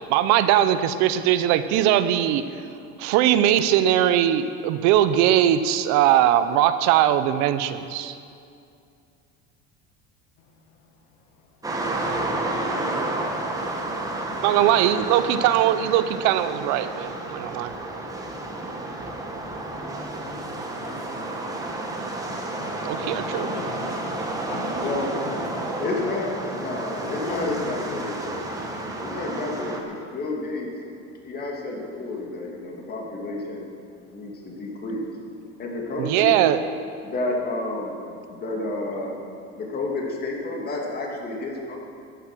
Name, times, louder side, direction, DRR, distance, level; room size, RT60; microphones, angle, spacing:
voice 1, 0.1-2.4 3.0-8.1 14.4-17.7 22.8-23.5 36.0-36.6, right 11 dB, 70° right, 12 dB, 0.8 m, -20 dB
voice 2, 10.4-14.5 17.3-26.4 26.9-29.0 31.2-31.3 33.9-34.6 35.5-35.6, left 4 dB, 75° left, 3 dB, 1.8 m, -43 dB
sound 1, 11.6-29.8, right 2 dB, 10° right, 1.4 m, -31 dB
voice 3, 24.8-25.1 25.8-28.4 29.0-30.7 31.2-33.7 34.1-35.0 35.6-36.5 37.0-38.0 38.3-39.1 39.6-41.8, left 2 dB, 30° left, -1 dB, 2.7 m, -30 dB
13.5 x 10.5 x 6.3 m, 2.5 s
cardioid pair, 145°, 29 cm